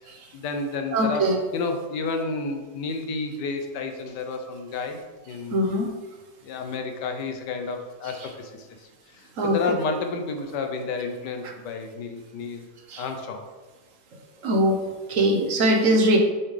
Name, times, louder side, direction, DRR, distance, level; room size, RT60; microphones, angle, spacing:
voice 1, 0.3-5.7 6.4-12.6 13.0-13.5, left 4 dB, 80° left, 5 dB, 1.4 m, -31 dB
voice 2, 0.9-1.4 5.5-5.9 9.4-9.6 11.4-11.5 12.9-13.0 14.4-16.2, right 1 dB, 55° right, 3 dB, 1.2 m, -21 dB
7.1 x 5.8 x 3.3 m, 1.3 s
omnidirectional pair, 1.8 m